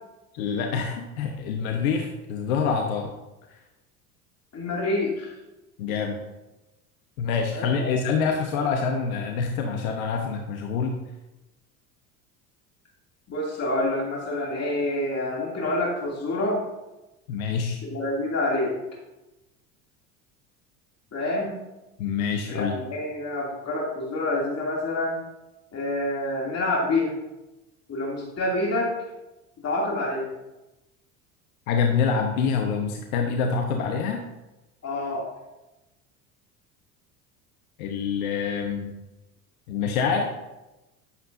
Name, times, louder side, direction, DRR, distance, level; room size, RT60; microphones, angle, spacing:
voice 1, 0.3-3.1 5.8-6.2 7.2-10.9 17.3-17.8 22.0-22.7 31.7-34.2 37.8-38.9 39.7-40.3, left 5 dB, 65° left, 3 dB, 1.1 m, -26 dB
voice 2, 4.5-5.3 7.5-7.9 13.3-16.6 17.8-18.8 21.1-21.6 22.5-25.2 25.7-27.1 27.9-28.9 29.6-30.3 34.8-35.3, left 2 dB, 35° left, -4 dB, 2.6 m, -27 dB
11.0 x 7.5 x 2.6 m, 1.0 s
hypercardioid pair, 70°, 44 cm